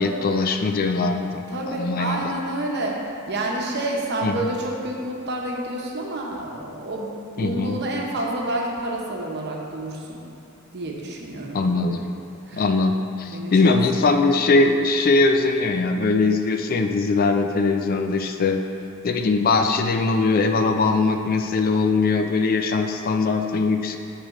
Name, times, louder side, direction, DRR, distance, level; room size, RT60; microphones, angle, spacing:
voice 1, 0.0-2.2 4.2-4.5 7.4-7.8 11.5-12.0 12.5-18.6 19.0-24.0, left 3 dB, 45° left, 5 dB, 0.4 m, -21 dB
voice 2, 1.5-3.0 3.3-10.2 10.7-12.0 12.5-12.6 13.2-13.8, right 1 dB, 55° right, -1 dB, 1.0 m, -29 dB
8.2 x 5.0 x 3.7 m, 2.8 s
head